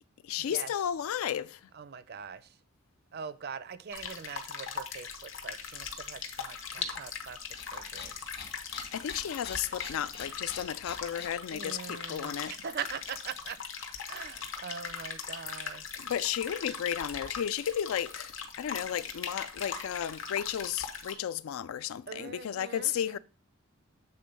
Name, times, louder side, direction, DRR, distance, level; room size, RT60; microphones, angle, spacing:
voice 1, 0.2-1.6 8.9-12.5 16.0-23.2, left 9 dB, 85° left, 0.3 m, -33 dB
voice 2, 1.7-2.5 3.1-7.4 7.6-8.1 11.5-13.6 14.0-15.9 22.1-23.2, right 6 dB, 50° right, 0.5 m, -42 dB
sound 1, 3.9-21.1, left 6 dB, 70° left, 1.0 m, -40 dB
sound 2, 5.6-11.3, left 5 dB, 50° left, 1.2 m, -47 dB
7.9 x 3.6 x 5.3 m
head